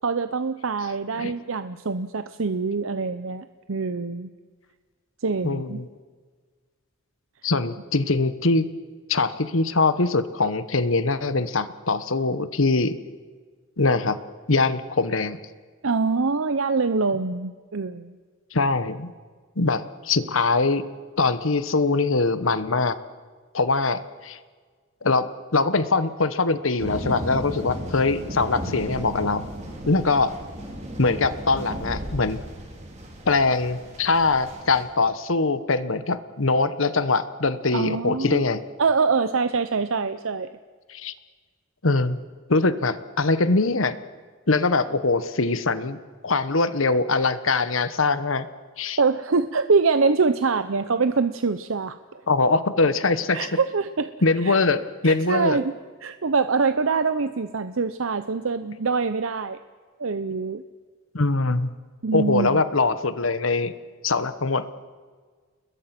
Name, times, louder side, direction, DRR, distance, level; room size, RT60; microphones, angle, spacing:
voice 1, 0.0-4.3 5.2-5.8 15.8-18.2 37.7-38.4 38.8-40.5 49.0-52.2 53.3-54.1 54.4-54.6 55.0-55.7 56.0-59.6 60.0-60.6 62.0-62.6, right 4 dB, 80° right, 11 dB, 0.8 m, -24 dB
voice 2, 5.4-5.9 7.4-8.6 9.1-13.0 13.8-14.2 14.5-15.4 18.5-19.1 19.6-20.8 21.2-23.0 23.5-24.4 25.0-25.3 25.5-29.4 29.9-30.3 31.0-32.4 33.3-38.6 40.9-41.1 41.8-42.2 42.5-44.0 44.5-46.0 46.2-48.5 48.8-49.0 52.3-53.5 54.2-55.6 61.1-61.7 62.1-63.7 64.0-64.7, left 3 dB, 80° left, 12 dB, 1.2 m, -22 dB
sound 1, 26.8-34.8, equal, 35° right, 4.4 m, -35 dB
29.5 x 21.5 x 6.0 m, 1.5 s
head